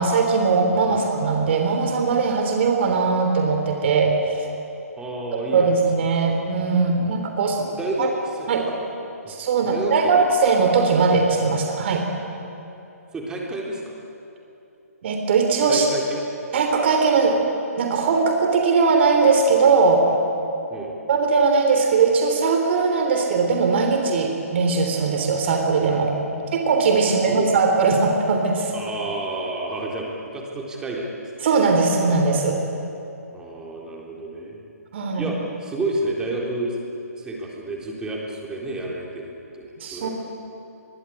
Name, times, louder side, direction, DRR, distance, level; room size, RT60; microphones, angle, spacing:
voice 1, 0.0-4.5 5.5-7.6 8.0-8.1 8.5-8.7 9.3-12.1 15.0-15.8 16.5-17.4 17.8-20.0 21.1-26.1 26.5-28.7 31.4-32.6 34.9-35.3 39.8-40.1, right 4 dB, 45° right, 3 dB, 3.4 m, -20 dB
voice 2, 5.0-5.7 7.6-8.8 9.2-9.4 9.6-10.3 13.1-14.0 15.7-16.2 20.7-21.0 27.0-27.5 28.7-31.5 33.3-34.6 35.2-36.8 37.1-40.1, right 2 dB, 10° right, -2 dB, 3.8 m, -30 dB
24.0 x 23.0 x 8.9 m, 2.9 s
hypercardioid pair, 150°, 9 cm